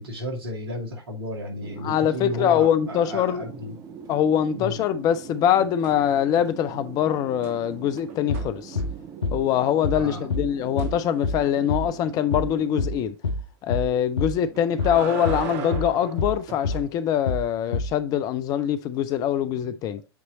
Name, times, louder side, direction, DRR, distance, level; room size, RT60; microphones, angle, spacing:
voice 1, 0.0-3.8 4.5-4.8 9.9-10.3 14.4-14.6 19.4-19.8, equal, 65° right, 2.2 m, -34 dB
sound 1, 1.6-13.0, right 7 dB, 25° right, 0.6 m, -42 dB
voice 2, 1.8-3.4 4.1-8.8 9.3-13.2 13.6-20.0, left 10 dB, 30° left, 0.5 m, -23 dB
sound 2, 5.8-6.5 6.8-9.2 10.8-11.0 14.3-16.9 19.1-19.2, right 6 dB, 40° right, 1.3 m, -37 dB
sound 3, 8.3-8.5 8.8-9.0 9.2-9.4 9.8-10.0 10.3-10.5 10.8-11.0 11.2-11.4 11.7-11.9 12.3-12.5 12.8-13.0 13.2-13.4 13.7-13.9 14.2-14.4 14.8-15.0 15.2-15.4 15.7-15.9 16.2-16.4 16.6-16.8 17.3-17.5 17.7-17.9, left 3 dB, 80° left, 0.8 m, -27 dB
8.2 x 3.1 x 4.0 m
figure-of-eight pair, 100°, 13 cm